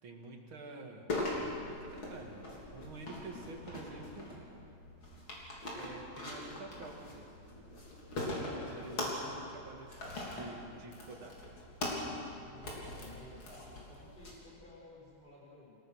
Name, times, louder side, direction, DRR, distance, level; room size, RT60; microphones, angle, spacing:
voice 1, 0.0-1.1 1.6-4.3 5.7-7.3 8.3-11.4, right 3 dB, 75° right, 2 dB, 2.9 m, -49 dB
sound 1, 1.1-14.3, left 1 dB, 70° left, 4.4 m, -41 dB
voice 2, 12.4-15.8, left 2 dB, 25° left, -5 dB, 5.7 m, -54 dB
27.5 x 17.5 x 6.4 m, 2.5 s
omnidirectional pair, 2.3 m